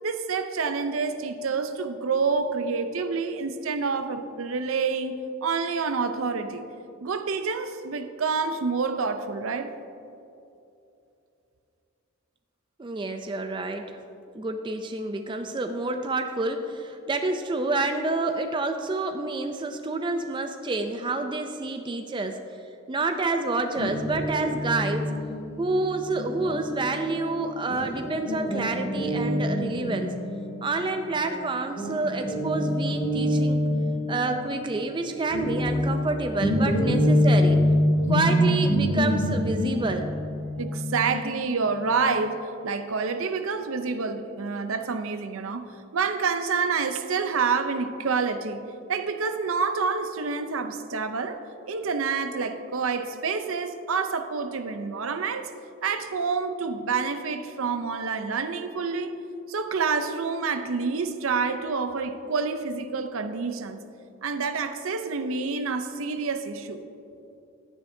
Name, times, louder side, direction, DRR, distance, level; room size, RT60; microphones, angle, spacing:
voice 1, 0.0-6.6 7.0-9.7 40.6-48.6 48.9-51.4 51.7-55.5 55.8-59.2 59.5-63.8 64.2-66.8, right 5 dB, 70° right, 9 dB, 0.6 m, -28 dB
voice 2, 12.8-14.0 14.3-22.4 22.9-25.1 25.6-30.2 30.6-33.6 34.1-37.7 38.1-40.1, right 3 dB, 20° right, 6 dB, 0.4 m, -28 dB
Guitar, 23.8-31.4 31.8-42.2, equal, 60° left, 1.7 m, -26 dB
12.0 x 9.9 x 2.7 m, 2.7 s
head